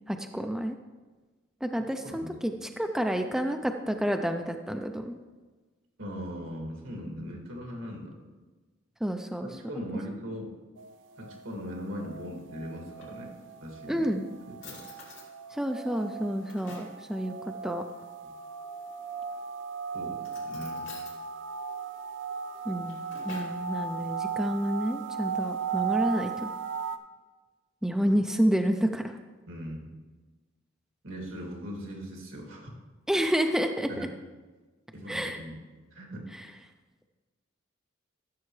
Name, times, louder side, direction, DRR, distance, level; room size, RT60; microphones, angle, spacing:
voice 1, 0.1-0.8 1.6-5.2 9.0-9.5 13.9-14.2 15.5-17.8 22.7-26.5 27.8-29.2 33.1-34.1 35.1-35.4 36.3-36.5, equal, 5° right, 5 dB, 0.4 m, -29 dB
voice 2, 6.0-8.1 9.4-10.5 11.2-13.3 13.6-14.1 14.5-14.8 19.9-20.9 29.5-29.9 31.0-32.7 33.9-34.1 34.9-35.5 35.9-36.2, equal, 80° right, 0 dB, 2.2 m, -39 dB
sound 1, 10.8-27.0, right 6 dB, 65° right, 0.5 m, -37 dB
Drawer open or close, 12.7-13.7 14.2-14.3 14.6-15.3 15.9-17.0 18.9-19.4 20.2-21.2 22.6-23.6, left 4 dB, 65° left, 2.7 m, -50 dB
14.0 x 6.9 x 3.2 m, 1.3 s
head